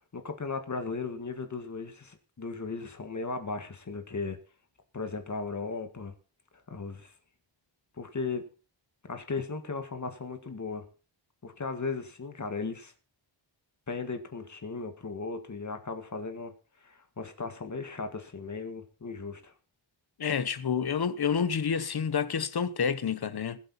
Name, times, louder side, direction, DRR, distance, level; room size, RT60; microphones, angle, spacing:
voice 1, 0.1-4.4 4.9-6.1 6.7-7.1 8.0-8.5 9.0-10.9 11.4-12.9 13.9-19.5, left 4 dB, 40° left, 1.8 m, -36 dB
voice 2, 20.2-23.6, left 7 dB, 55° left, 1.1 m, -29 dB
20.5 x 8.3 x 4.3 m
wide cardioid pair, 120°, 45 cm